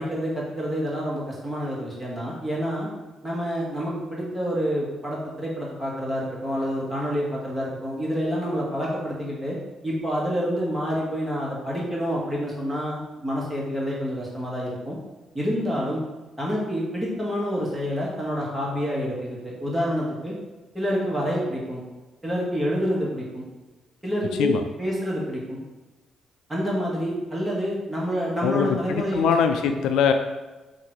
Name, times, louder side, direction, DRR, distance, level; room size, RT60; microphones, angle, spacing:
voice 1, 0.0-2.9 3.2-9.6 9.8-15.0 15.3-16.0 16.4-20.3 20.7-21.8 22.2-23.5 24.0-24.5 24.8-25.6 26.5-29.3 29.6-29.8, equal, 10° right, -5 dB, 1.5 m, -28 dB
voice 2, 28.4-30.1, left 7 dB, 85° left, 7 dB, 0.3 m, -22 dB
3.7 x 2.6 x 4.6 m, 1.2 s
cardioid pair, 90°, 0 cm